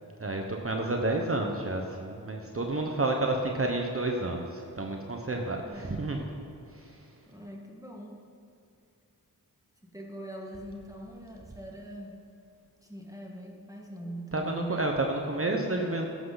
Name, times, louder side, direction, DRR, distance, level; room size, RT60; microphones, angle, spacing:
voice 1, 0.2-6.2 6.7-7.0 14.3-16.1, right 2 dB, 35° right, 2 dB, 1.2 m, -30 dB
voice 2, 5.6-6.0 7.3-8.2 9.8-12.2 12.8-14.8, right 1 dB, 10° right, -1 dB, 1.9 m, -42 dB
14.5 x 11.0 x 4.1 m, 2.6 s
cardioid pair, 60°, 37 cm